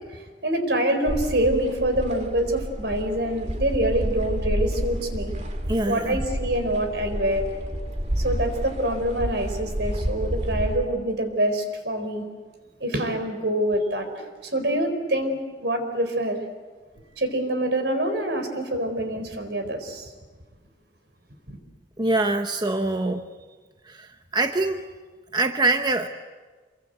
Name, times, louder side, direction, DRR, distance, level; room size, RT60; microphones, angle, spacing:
voice 1, 0.4-5.3 5.9-7.5 8.2-12.3 12.8-14.1 14.5-16.4 17.2-20.1 21.5-21.6, right 1 dB, 70° right, 6 dB, 4.6 m, -25 dB
sound 1, 1.1-10.8, equal, 40° right, 2.5 m, -30 dB
voice 2, 5.7-6.2 22.0-23.3 23.8-24.9 25.3-26.1, right 2 dB, 25° right, 6 dB, 0.9 m, -24 dB
28.0 x 23.0 x 8.2 m, 1.4 s
head